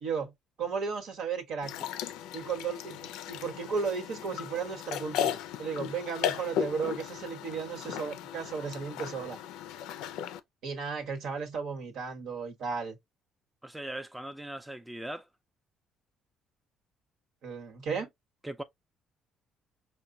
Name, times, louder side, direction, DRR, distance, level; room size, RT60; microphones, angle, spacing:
voice 1, 0.0-0.3 0.6-1.7 2.3-3.0 3.3-9.4 10.6-13.0 17.4-18.1, right 5 dB, 70° right, 1.2 m, -34 dB
sound 1, 1.6-10.4, left 10 dB, 85° left, 0.4 m, -36 dB
voice 2, 13.6-15.3 18.4-18.6, right 1 dB, 5° right, 0.4 m, -39 dB
4.8 x 2.2 x 2.6 m
cardioid pair, 105°, 0 cm